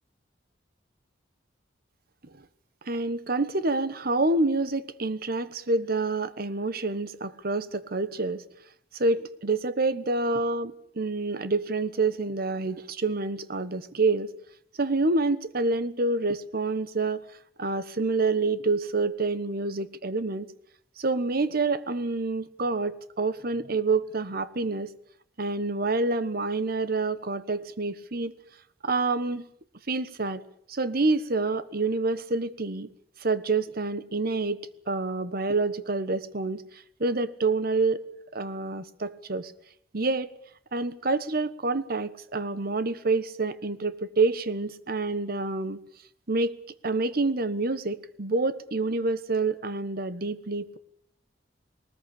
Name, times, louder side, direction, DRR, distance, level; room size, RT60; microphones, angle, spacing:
voice 1, 2.8-8.4 8.9-14.3 14.8-17.2 17.6-20.5 21.0-24.9 25.4-28.3 28.8-29.4 29.9-30.4 30.7-32.9 33.2-38.0 38.3-39.5 39.9-40.3 40.7-45.8 46.3-46.6 46.8-50.8, right 3 dB, 55° right, 15 dB, 1.2 m, -27 dB
20.0 x 19.5 x 8.5 m, 0.68 s
head